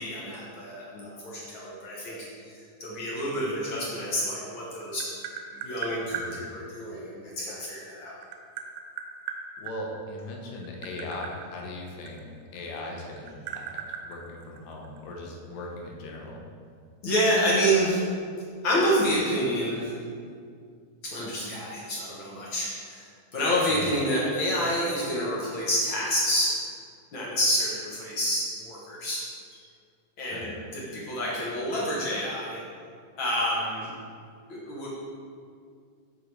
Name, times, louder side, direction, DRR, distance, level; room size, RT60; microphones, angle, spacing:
voice 1, 0.0-2.2 2.5-5.1 5.5-8.1 17.0-18.1 18.6-20.0 21.0-23.1 23.3-26.5 27.1-29.2 30.2-32.6 33.2-33.9 34.5-34.9, equal, 70° left, -6 dB, 1.1 m, -28 dB
Tap, 4.6-6.3 7.6-9.8 10.5-12.7 13.0-15.0, right 8 dB, 80° right, 1.7 m, -37 dB
voice 2, 9.6-12.2 12.5-13.8 14.0-16.4 23.7-23.9 30.2-30.5, left 2 dB, 90° left, 0 dB, 2.5 m, -39 dB
7.1 x 5.6 x 3.3 m, 2.2 s
omnidirectional pair, 3.7 m